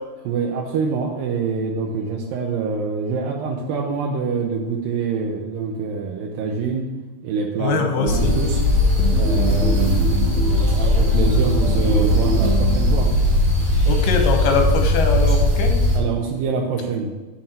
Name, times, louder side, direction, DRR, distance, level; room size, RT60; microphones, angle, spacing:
voice 1, 0.2-6.9 7.2-7.8 8.2-8.6 9.1-13.1 15.9-17.1, right 5 dB, 75° right, -1 dB, 2.3 m, -25 dB
voice 2, 7.6-8.3 13.8-15.8, left 4 dB, 85° left, 4 dB, 3.0 m, -22 dB
sound 1, 7.9-14.3, right 5 dB, 45° right, 1.4 m, -29 dB
sound 2, 8.0-16.0, left 1 dB, 25° right, 2.0 m, -18 dB
7.3 x 4.5 x 6.7 m, 1.2 s
omnidirectional pair, 4.4 m